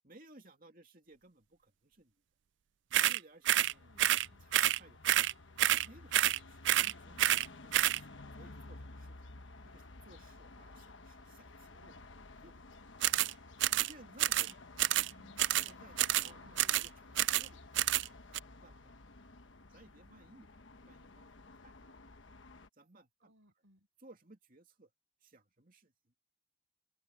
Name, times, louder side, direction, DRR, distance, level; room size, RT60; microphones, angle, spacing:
voice 1, 0.0-2.1 2.9-3.9 4.4-5.0 5.7-9.3 9.6-12.0 12.3-12.9 13.7-14.5 15.6-17.8 18.1-18.2 18.6-19.0 19.7-21.9 22.8-23.3 24.0-24.9 25.2-25.9, right 2 dB, 40° right, 2.8 m, -60 dB
sound 1, 2.9-3.2 3.5-3.7 4.0-4.3 4.5-4.8 5.0-5.3 5.6-5.9 6.1-6.4 6.7-6.9 7.2-7.5 7.7-8.0 13.0-13.3 13.6-13.9 14.2-14.5 14.8-15.1 15.4-15.7 16.0-16.3 16.6-16.9 17.2-17.5 17.8-18.1 18.3-18.4, right 13 dB, 60° right, 0.4 m, -28 dB
sound 2, 3.6-22.7, left 2 dB, 65° left, 1.2 m, -53 dB
voice 2, 3.8-4.5 14.4-15.4 16.0-16.7 23.2-23.9, right 1 dB, 80° right, 6.2 m, -64 dB
head